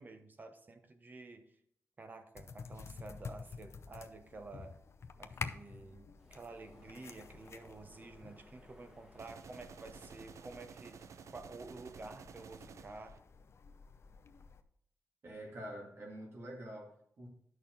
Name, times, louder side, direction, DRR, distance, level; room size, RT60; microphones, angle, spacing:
voice 1, 0.0-1.5 2.0-4.8 5.2-13.2, right 3 dB, 35° right, 7 dB, 1.0 m, -51 dB
sound 1, 2.3-14.6, left 5 dB, 60° left, 0.6 m, -50 dB
Waves surf, 6.2-11.6, equal, 10° right, 1.4 m, -64 dB
sound 2, 9.2-13.2, right 7 dB, 75° right, 0.4 m, -53 dB
voice 2, 15.2-17.3, right 1 dB, 55° right, -1 dB, 2.2 m, -47 dB
11.0 x 6.3 x 3.9 m, 0.70 s
wide cardioid pair, 125°, 5 cm